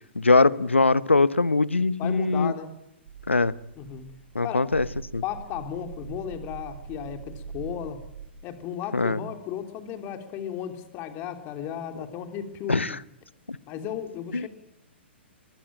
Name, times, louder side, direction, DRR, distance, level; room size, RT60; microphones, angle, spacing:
voice 1, 0.1-2.5 3.3-3.6 4.3-4.9 5.1-5.2 8.9-9.2 12.7-13.0 13.5-13.6 14.3-14.5, left 3 dB, 85° left, 0.9 m, -21 dB
voice 2, 2.0-2.7 3.7-4.1 4.4-4.7 5.2-8.0 8.4-13.0 13.7-14.5, left 9 dB, 30° left, 3.3 m, -35 dB
sound 1, 3.0-8.3, right 5 dB, 60° right, 3.2 m, -42 dB
23.5 x 21.0 x 8.8 m
figure-of-eight pair, 115°, 6 cm